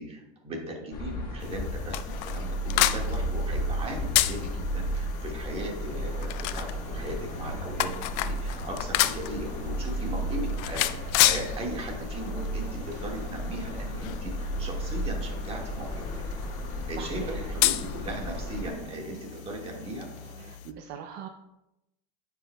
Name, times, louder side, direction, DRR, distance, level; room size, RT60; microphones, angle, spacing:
voice 1, 0.0-16.0 16.9-20.1, right 1 dB, 30° right, 0 dB, 1.6 m, -38 dB
sound 1, 0.9-18.7, equal, 45° left, 1.3 m, -34 dB
sound 2, 1.4-20.7, left 15 dB, 65° left, 0.4 m, -32 dB
sound 3, 5.9-20.5, right 3 dB, 90° right, 1.2 m, -48 dB
voice 2, 17.0-17.3 20.4-21.3, right 8 dB, 60° right, 5 dB, 0.5 m, -41 dB
8.8 x 4.9 x 2.2 m, 0.90 s
supercardioid pair, 125°, 21 cm